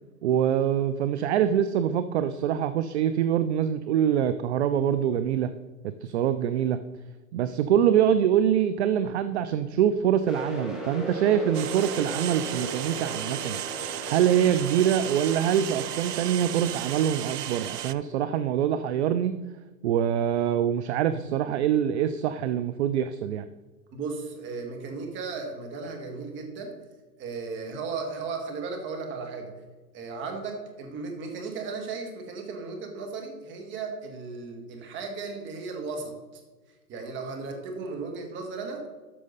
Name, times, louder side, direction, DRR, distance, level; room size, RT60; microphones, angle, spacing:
voice 1, 0.2-5.5 5.8-6.8 7.3-19.3 19.8-23.5, right 9 dB, 45° right, 12 dB, 0.5 m, -24 dB
sound 1, 10.3-17.9, right 1 dB, ahead, 1.6 m, -38 dB
sound 2, 11.5-17.9, right 12 dB, 85° right, 0.6 m, -34 dB
voice 2, 23.9-26.7 27.2-29.5 29.9-36.1 36.9-38.8, right 4 dB, 25° right, 3 dB, 1.9 m, -35 dB
13.0 x 6.2 x 4.1 m, 1.3 s
hypercardioid pair, 135°, 46 cm